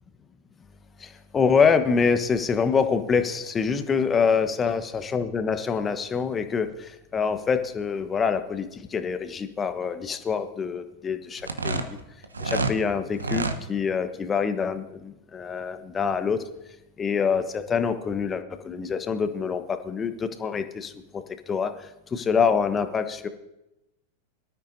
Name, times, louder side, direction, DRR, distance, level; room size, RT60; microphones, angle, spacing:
voice 1, 1.0-11.8 12.4-16.4 17.0-21.7 22.1-23.3, left 6 dB, 20° left, 9 dB, 1.2 m, -25 dB
sound 1, 11.4-12.8 13.1-13.6, right 3 dB, 75° right, 1.1 m, -28 dB
24.0 x 13.0 x 2.8 m, 0.92 s
figure-of-eight pair, 90°, 0 cm